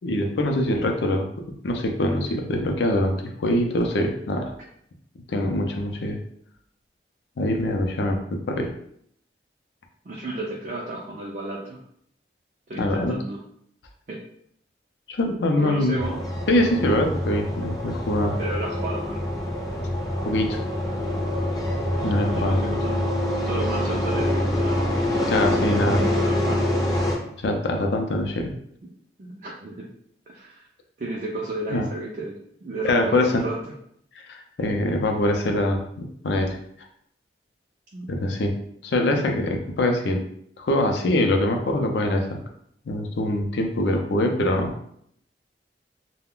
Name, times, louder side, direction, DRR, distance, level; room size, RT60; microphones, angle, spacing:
voice 1, 0.0-1.3 1.6-4.5 5.3-6.2 7.4-8.7 12.8-13.1 15.1-16.0 16.5-18.4 20.2-20.6 22.0-22.7 25.3-26.0 27.4-28.5 31.7-31.9 32.8-33.4 34.3-36.6 38.1-38.5 38.8-40.2 40.6-42.4 42.9-44.8, left 1 dB, 75° left, 3 dB, 0.5 m, -23 dB
voice 2, 10.0-11.8 12.7-13.4 14.1-14.2 15.6-16.3 18.4-19.5 22.2-23.1 23.4-24.8 25.7-26.7 29.2-29.9 30.3-30.6 31.0-33.6 37.9-38.1, right 2 dB, 45° right, -4 dB, 0.4 m, -33 dB
sound 1, 16.0-27.2, left 1 dB, 20° left, 0.5 m, -25 dB
2.3 x 2.1 x 3.6 m, 0.69 s
head